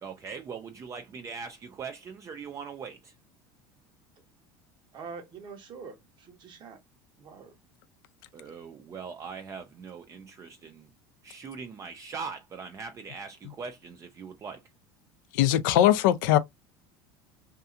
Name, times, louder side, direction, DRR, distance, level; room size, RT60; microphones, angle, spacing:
voice 1, 0.0-3.1 8.3-10.9 11.2-14.6, right 5 dB, 30° right, 0.4 m, -41 dB
voice 2, 4.9-6.8 7.2-7.5, right 5 dB, 45° right, 1.1 m, -44 dB
voice 3, 15.3-16.4, left 12 dB, 80° left, 0.4 m, -21 dB
2.7 x 2.3 x 2.4 m
supercardioid pair, 100°, 10 cm